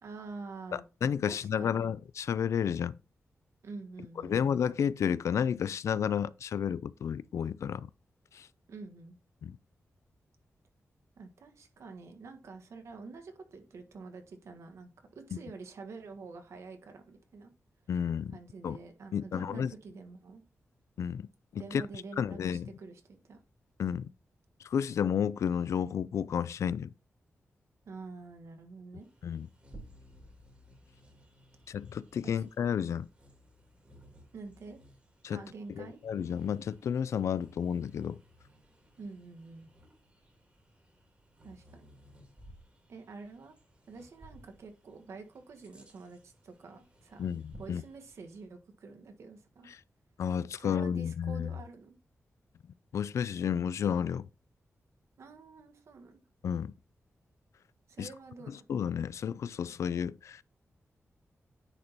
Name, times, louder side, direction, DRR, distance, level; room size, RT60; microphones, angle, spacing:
voice 1, 0.0-0.8 1.2-1.9 3.6-4.4 8.7-9.2 11.2-14.9 15.1-17.5 18.3-20.4 21.6-23.4 27.8-29.1 32.2-32.4 34.3-34.8 35.3-36.0 39.0-39.7 41.4-41.9 42.9-43.6 43.9-47.3 47.6-49.7 50.5-51.9 55.2-56.2 57.9-58.6, right 4 dB, 75° right, 1.5 m, -47 dB
voice 2, 0.7-3.0 4.2-7.9 8.3-8.5 9.4-9.6 15.3-15.4 17.9-18.4 18.6-18.8 19.1-19.7 21.0-21.3 21.5-21.8 22.2-22.7 23.8-24.1 24.6-26.9 29.2-29.5 31.7-33.1 35.2-35.4 35.8-38.2 47.2-47.8 50.2-51.5 52.9-54.3 56.4-56.7 58.0-58.1 58.7-60.4, left 8 dB, 90° left, 0.4 m, -31 dB
Bird vocalization bird call bird song, 29.0-48.5, equal, 25° right, 2.7 m, -58 dB
9.8 x 4.1 x 4.5 m
wide cardioid pair, 165°, 5 cm